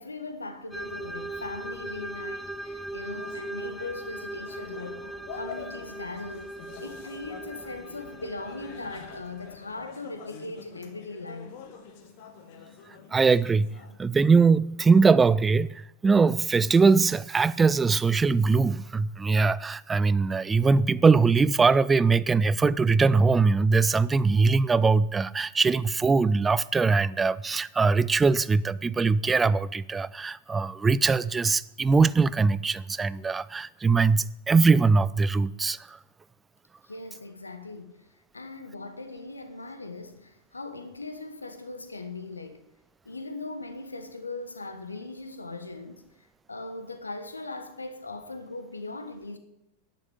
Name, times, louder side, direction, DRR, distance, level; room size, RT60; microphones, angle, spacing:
voice 1, 0.0-11.6 36.8-38.1 38.3-42.6 43.0-49.4, left 3 dB, 80° left, 1.3 m, -39 dB
sound 1, 0.7-9.7, right 1 dB, ahead, 0.8 m, -39 dB
sound 2, 3.1-14.0, left 6 dB, 50° left, 2.2 m, -46 dB
voice 2, 13.1-13.7 14.0-36.0, right 4 dB, 15° right, 0.4 m, -22 dB
11.0 x 9.2 x 8.0 m
figure-of-eight pair, 90°, 0 cm